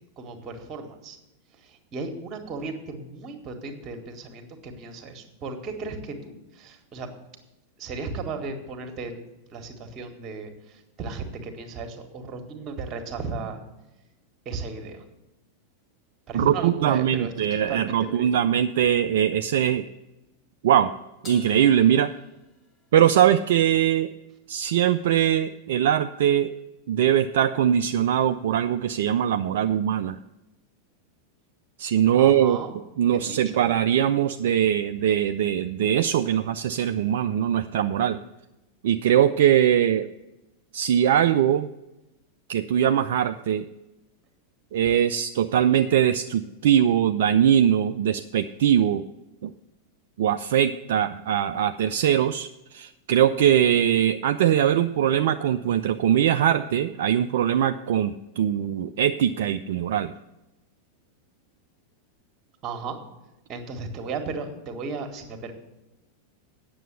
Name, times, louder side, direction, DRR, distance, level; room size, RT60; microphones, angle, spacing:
voice 1, 0.2-1.2 1.6-7.1 7.8-9.2 9.5-13.6 14.5-15.0 16.3-18.3 32.1-32.7 33.1-33.6 62.6-63.0 63.5-65.5, right 4 dB, 30° right, 6 dB, 1.6 m, -35 dB
voice 2, 16.3-19.9 20.6-20.9 21.2-22.1 22.9-24.1 24.5-26.5 26.9-30.2 31.8-32.6 33.0-38.2 38.8-40.1 40.7-41.7 42.5-43.7 44.7-49.0 49.4-49.5 50.2-60.1, right 10 dB, 55° right, 8 dB, 0.4 m, -21 dB
Crash cymbal, 21.2-23.0, left 2 dB, 30° left, 1.8 m, -46 dB
9.1 x 6.8 x 8.0 m, 0.97 s
figure-of-eight pair, 90°, 0 cm